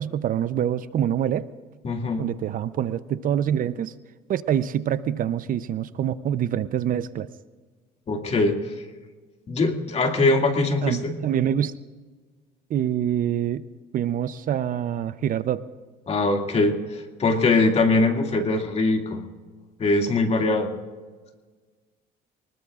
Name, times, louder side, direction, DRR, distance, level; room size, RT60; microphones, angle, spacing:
voice 1, 0.0-1.5 2.2-3.9 4.3-7.3 10.8-11.7 12.7-13.7 13.9-15.6, right 10 dB, 55° right, 14 dB, 0.6 m, -25 dB
voice 2, 1.8-2.2 8.1-8.6 9.5-11.1 16.1-19.2 19.8-20.7, left 3 dB, 40° left, 3 dB, 2.3 m, -22 dB
24.5 x 20.5 x 2.5 m, 1.4 s
cardioid pair, 110°, 17 cm